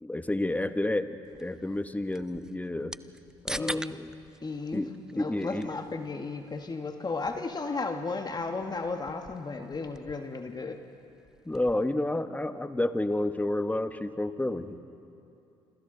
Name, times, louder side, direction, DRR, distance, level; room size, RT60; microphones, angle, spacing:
voice 1, 0.0-2.9 3.4-4.1 4.7-4.9 5.2-5.7 11.4-14.8, left 1 dB, 10° left, 10 dB, 1.2 m, -30 dB
sound 1, 1.2-11.9, right 1 dB, 5° right, 0.5 m, -45 dB
voice 2, 3.6-4.0 4.4-10.8, left 3 dB, 30° left, 5 dB, 1.6 m, -34 dB
27.5 x 26.5 x 4.0 m, 2.7 s
hypercardioid pair, 60°, 14 cm